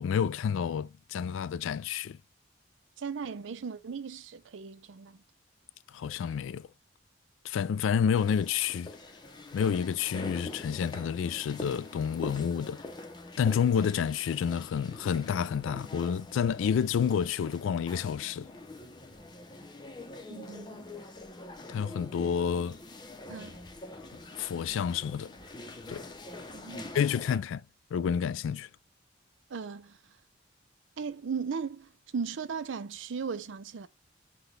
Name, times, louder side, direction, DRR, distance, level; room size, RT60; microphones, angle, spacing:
voice 1, 0.0-2.2 5.9-6.7 7.4-8.9 9.5-12.8 13.4-18.5 21.7-22.8 24.4-25.3 25.9-26.1 26.9-27.6 27.9-28.7, left 7 dB, 80° left, 0.3 m, -29 dB
voice 2, 3.0-5.2 20.3-20.8 23.3-23.6 26.5-26.9 29.5-30.0 31.0-33.9, right 5 dB, 75° right, 0.5 m, -37 dB
sound 1, 8.2-27.4, left 2 dB, 20° left, 0.6 m, -45 dB
5.8 x 2.2 x 3.2 m
head